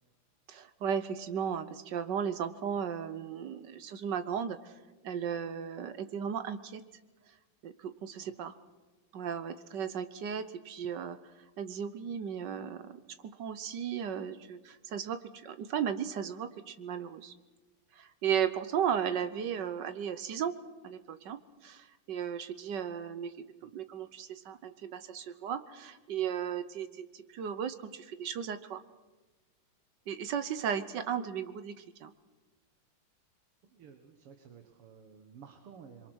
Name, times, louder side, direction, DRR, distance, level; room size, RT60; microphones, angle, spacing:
voice 1, 0.5-4.7 5.0-6.8 7.6-8.5 9.1-11.2 11.6-17.3 17.9-20.5 20.8-28.8 30.1-32.1, right 8 dB, 60° right, 11 dB, 1.4 m, -35 dB
voice 2, 33.6-36.1, right 7 dB, 85° right, 6 dB, 2.4 m, -53 dB
26.5 x 23.0 x 6.3 m, 1.2 s
omnidirectional pair, 2.4 m